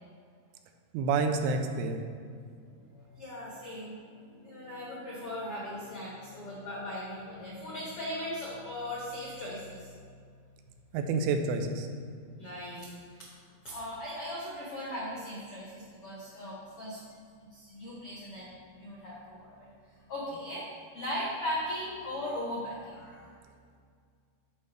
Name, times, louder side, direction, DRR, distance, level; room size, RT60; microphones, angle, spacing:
voice 1, 0.9-2.0 10.9-11.9, right 4 dB, 80° right, 6 dB, 2.5 m, -28 dB
voice 2, 2.7-9.9 12.4-12.8 13.6-17.0 17.5-19.7 20.1-20.6 20.9-23.3, left 1 dB, 80° left, -5 dB, 1.2 m, -38 dB
13.0 x 5.4 x 3.4 m, 2.1 s
omnidirectional pair, 4.7 m